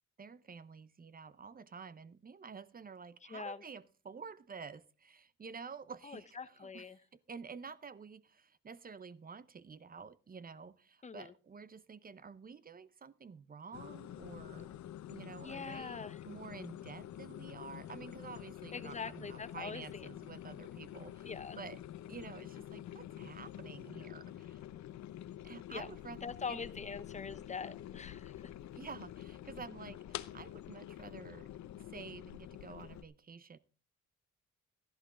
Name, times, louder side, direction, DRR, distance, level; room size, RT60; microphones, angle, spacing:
voice 1, 0.2-14.7 15.1-21.8 22.1-24.6 25.4-26.6 28.8-31.5 31.8-33.6, right 5 dB, 30° right, 0.7 m, -50 dB
voice 2, 3.3-3.6 6.0-7.0 11.0-11.3 15.4-16.2 18.7-20.1 21.2-21.6 25.7-25.9 26.2-28.3, left 5 dB, 25° left, 0.8 m, -43 dB
sound 1, 13.7-33.0, left 12 dB, 65° left, 0.8 m, -48 dB
13.5 x 11.5 x 3.7 m
cardioid pair, 90°, 30 cm